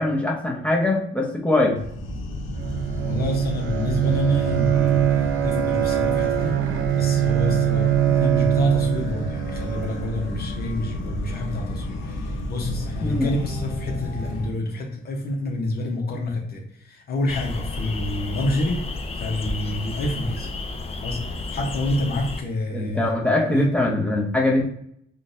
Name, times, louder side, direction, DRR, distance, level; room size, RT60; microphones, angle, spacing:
voice 1, 0.0-1.8 13.0-13.3 22.7-24.7, left 2 dB, 5° left, -2 dB, 0.8 m, -22 dB
sound 1, 1.8-14.5, left 1 dB, 85° left, 0.7 m, -31 dB
Bowed string instrument, 2.5-10.4, right 11 dB, 75° right, 0.5 m, -23 dB
voice 2, 3.0-6.6 6.9-18.9 19.1-20.5 21.0-23.7, left 1 dB, 50° left, 0 dB, 0.8 m, -28 dB
sound 2, 17.3-22.4, left 2 dB, 30° left, 0.5 m, -31 dB
3.8 x 2.3 x 2.6 m, 0.69 s
cardioid pair, 90°, 20 cm